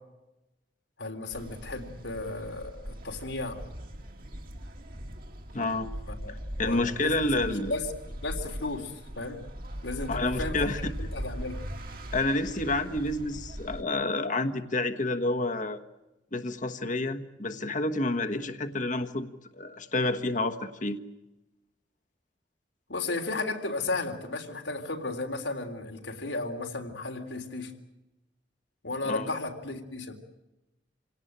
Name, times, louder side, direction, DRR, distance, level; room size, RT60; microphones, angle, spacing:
voice 1, 1.0-3.6 6.1-7.9 8.2-9.4 9.8-11.6 22.9-27.7 28.8-30.1, left 2 dB, 90° left, 4 dB, 3.6 m, -34 dB
sound 1, 1.3-13.8, equal, 50° right, 2.7 m, -40 dB
voice 2, 5.5-5.9 6.6-7.7 10.1-10.9 12.1-15.8 16.3-19.3 19.5-21.0 29.0-29.3, left 2 dB, 45° left, 7 dB, 1.4 m, -29 dB
27.5 x 18.0 x 8.9 m, 0.98 s
head